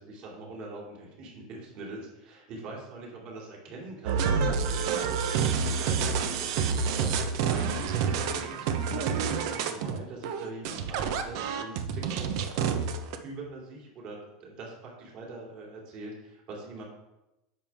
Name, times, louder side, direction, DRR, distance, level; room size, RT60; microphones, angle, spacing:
voice 1, 0.0-12.9 13.2-16.8, right 3 dB, 45° right, -2 dB, 3.0 m, -43 dB
sound 1, 4.1-13.2, right 6 dB, 60° right, 0.8 m, -28 dB
10.5 x 7.1 x 3.6 m, 0.95 s
supercardioid pair, 155°, 3 cm